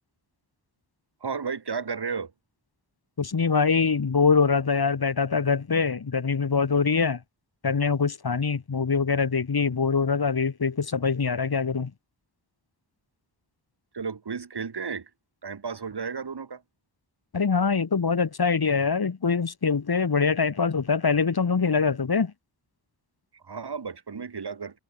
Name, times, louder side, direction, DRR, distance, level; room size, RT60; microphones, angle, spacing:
voice 1, 1.2-2.3 13.9-15.1 15.4-16.6 23.3-24.8, right 5 dB, 60° right, 3.2 m, -33 dB
voice 2, 3.2-7.2 7.6-11.9 17.3-22.3, left 5 dB, 55° left, 2.8 m, -24 dB
wide cardioid pair, 75°, 44 cm